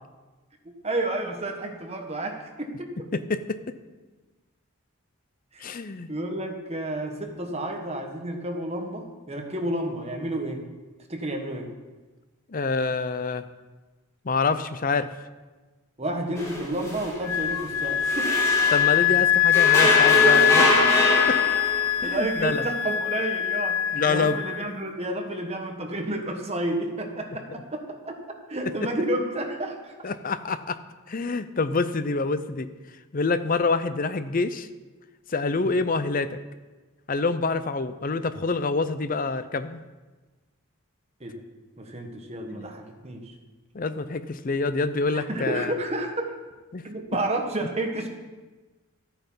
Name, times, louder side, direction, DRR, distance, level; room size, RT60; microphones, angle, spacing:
voice 1, 0.8-3.0 5.5-5.6 6.1-10.6 11.1-11.7 16.0-18.3 20.7-20.8 22.0-28.2 28.5-30.1 35.5-35.7 41.2-41.4 41.8-43.3 45.1-46.3 46.8-48.1, right 1 dB, 30° right, 3 dB, 1.4 m, -31 dB
voice 2, 3.1-3.6 5.6-6.1 12.5-13.5 14.2-15.1 18.7-20.7 21.3-21.4 22.0-22.6 23.9-24.4 30.0-30.8 31.1-32.7 33.1-34.7 35.3-36.4 37.1-39.8 42.5-42.7 43.7-45.7 46.7-46.9, left 4 dB, 40° left, 12 dB, 0.6 m, -26 dB
sound 1, 16.4-19.1 19.5-22.0, equal, 15° left, 2.5 m, -24 dB
Wind instrument woodwind instrument, 17.3-24.7, left 11 dB, 80° left, 0.6 m, -22 dB
13.0 x 9.1 x 5.6 m, 1.2 s
head